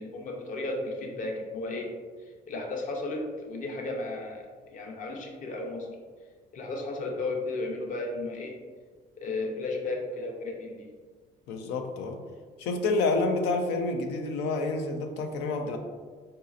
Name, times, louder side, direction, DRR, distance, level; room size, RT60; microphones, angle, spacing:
voice 1, 0.0-1.9 2.5-5.9 6.5-8.5 9.2-10.9 15.5-15.7, left 2 dB, 50° left, 0 dB, 0.7 m, -34 dB
voice 2, 11.5-12.2 12.6-15.8, left 3 dB, 90° left, 5 dB, 0.5 m, -28 dB
4.0 x 2.7 x 2.4 m, 1.5 s
cardioid pair, 110°, 17 cm